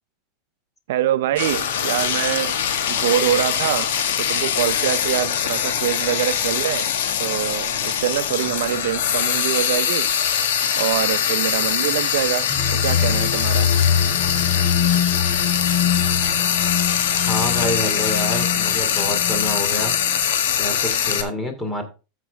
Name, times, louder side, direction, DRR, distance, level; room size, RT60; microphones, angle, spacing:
voice 1, 0.9-2.6 2.9-3.9 4.2-6.9 7.2-10.1 10.8-12.5 12.8-13.7, right 12 dB, 75° right, 0.6 m, -24 dB
Frying (food), 1.4-21.2, left 8 dB, 80° left, 1.6 m, -22 dB
sound 1, 12.5-20.2, left 8 dB, 40° left, 1.3 m, -24 dB
voice 2, 17.3-20.0 20.6-21.8, equal, 10° left, 2.5 m, -27 dB
14.0 x 6.0 x 3.4 m
supercardioid pair, 135°, 0 cm